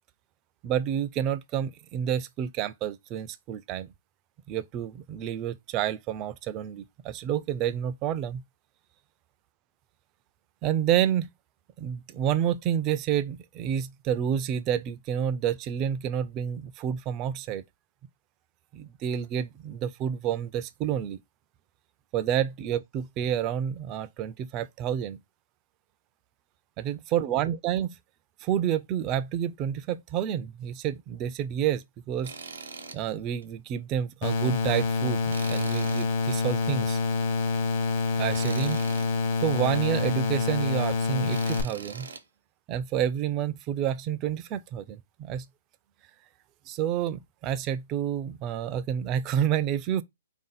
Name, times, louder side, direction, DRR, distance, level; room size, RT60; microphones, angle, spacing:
voice 1, 0.6-3.9 4.5-8.4 10.6-11.3 11.8-17.6 18.7-21.2 22.1-25.2 26.8-28.0 28.4-32.3 32.9-37.0 38.2-38.8 39.4-42.1 42.7-45.4 46.7-50.0, right 9 dB, 25° right, 0.3 m, -29 dB
Tools, 32.2-33.0 33.4-33.5 35.3-36.4 38.3-39.1 41.3-42.2, right 5 dB, 75° right, 0.8 m, -42 dB
sound 1, 34.2-41.6, left 4 dB, 45° left, 0.9 m, -27 dB
3.6 x 2.6 x 3.9 m
hypercardioid pair, 145°, 0 cm